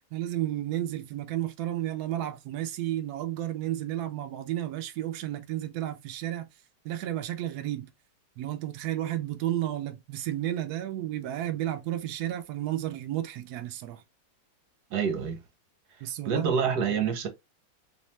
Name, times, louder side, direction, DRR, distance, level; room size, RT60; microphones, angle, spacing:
voice 1, 0.1-6.5 6.8-7.9 8.4-14.0 16.0-16.6, right 13 dB, 80° right, 0.8 m, -32 dB
voice 2, 14.9-15.4 16.2-17.3, right 6 dB, 65° right, 1.2 m, -27 dB
3.2 x 3.1 x 3.1 m
omnidirectional pair, 2.2 m